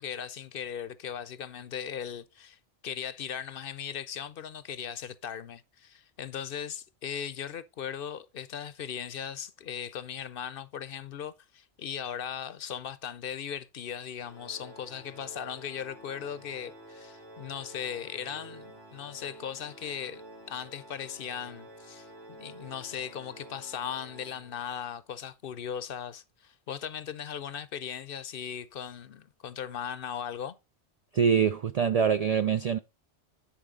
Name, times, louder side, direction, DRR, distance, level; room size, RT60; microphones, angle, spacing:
voice 1, 0.0-20.2 20.5-30.6, left 8 dB, 60° left, 0.7 m, -38 dB
Organ, 14.2-24.9, right 1 dB, 90° right, 3.6 m, -50 dB
voice 2, 31.1-32.8, right 7 dB, 65° right, 0.4 m, -24 dB
10.0 x 4.7 x 3.7 m
omnidirectional pair, 1.1 m